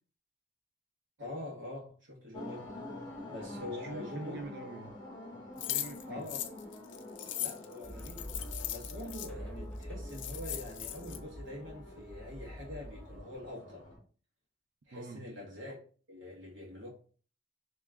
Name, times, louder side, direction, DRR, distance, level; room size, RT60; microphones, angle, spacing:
voice 1, 1.2-2.6 3.3-4.4 6.1-6.4 7.4-8.3 8.7-13.9 14.9-15.8 16.1-16.9, left 1 dB, 85° right, -3 dB, 1.4 m, -44 dB
sound 1, 2.3-14.0, left 2 dB, 25° left, 1.0 m, -48 dB
voice 2, 3.5-5.0 5.6-6.3 14.9-15.4, right 3 dB, 55° right, 5 dB, 0.4 m, -45 dB
sound 2, 5.6-9.3 9.8-9.9 10.1-11.2, left 12 dB, 70° left, 0.5 m, -38 dB
sound 3, 7.8-13.2, equal, 5° left, 0.6 m, -45 dB
3.6 x 3.0 x 3.5 m, 0.42 s
head